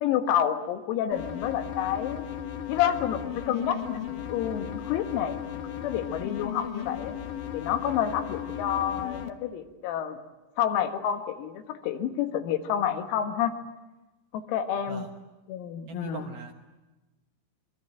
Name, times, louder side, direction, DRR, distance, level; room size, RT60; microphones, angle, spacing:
voice 1, 0.0-2.3 2.7-7.2 7.5-10.2 10.6-13.5 14.3-15.1 15.5-16.3, left 9 dB, 90° left, 6 dB, 4.4 m, -29 dB
sound 1, 1.1-9.3, left 9 dB, 70° left, 1.9 m, -36 dB
voice 2, 15.9-16.5, right 6 dB, 70° right, 3 dB, 2.3 m, -40 dB
27.5 x 22.5 x 9.0 m, 1.1 s
omnidirectional pair, 6.0 m